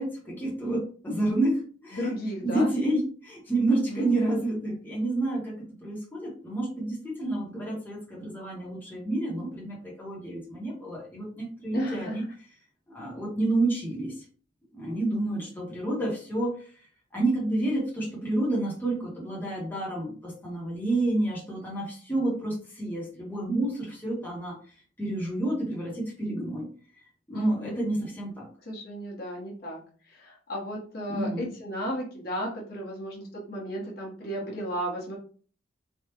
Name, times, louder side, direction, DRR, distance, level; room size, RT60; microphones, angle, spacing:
voice 1, 0.0-2.1 2.4-12.2 12.9-14.1 14.7-16.7 17.1-24.5 25.0-26.7 27.3-28.5 31.1-31.5, right 2 dB, 10° left, -5 dB, 0.9 m, -29 dB
voice 2, 1.9-2.7 3.7-4.1 11.7-12.2 27.3-27.8 28.7-29.8 30.1-35.2, equal, 55° left, -3 dB, 1.1 m, -34 dB
3.4 x 2.3 x 2.9 m, 0.42 s
head